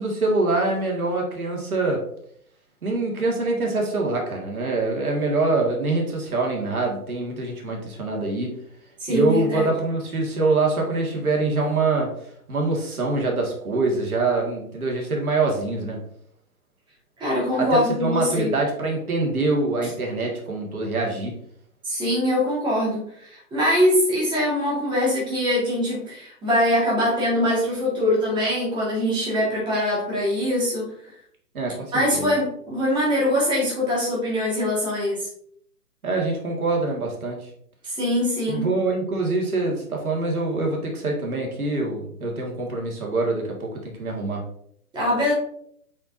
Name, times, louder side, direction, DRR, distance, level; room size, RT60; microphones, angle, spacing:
voice 1, 0.0-2.0 2.8-8.6 9.1-12.1 12.5-16.0 17.6-21.3 31.5-32.3 36.0-37.4 38.5-44.4, right 3 dB, 65° right, 0 dB, 2.1 m, -24 dB
voice 2, 9.0-9.7 17.2-18.5 19.8-19.9 21.8-30.9 31.9-35.3 37.8-38.7 44.9-45.3, left 1 dB, 10° right, -6 dB, 1.9 m, -23 dB
8.5 x 4.2 x 2.7 m, 0.67 s
figure-of-eight pair, 135°, 46 cm